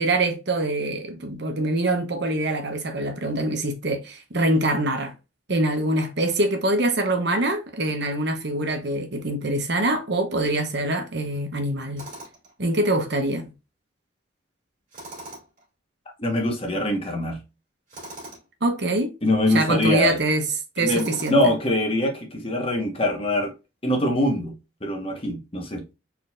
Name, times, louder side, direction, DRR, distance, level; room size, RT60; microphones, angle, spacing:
voice 1, 0.0-5.1 5.5-12.1 12.6-13.4 18.6-19.1 19.5-20.4 20.8-21.5, right 1 dB, 55° right, 1.0 m, -24 dB
Tools, 12.0-12.5 14.9-15.6 17.9-18.5 20.9-21.6, right 1 dB, 40° right, 2.8 m, -40 dB
voice 2, 16.2-17.4 19.2-20.2 20.8-23.5 23.8-24.5 24.8-25.8, left 1 dB, 30° left, 1.2 m, -23 dB
4.4 x 3.9 x 2.5 m
head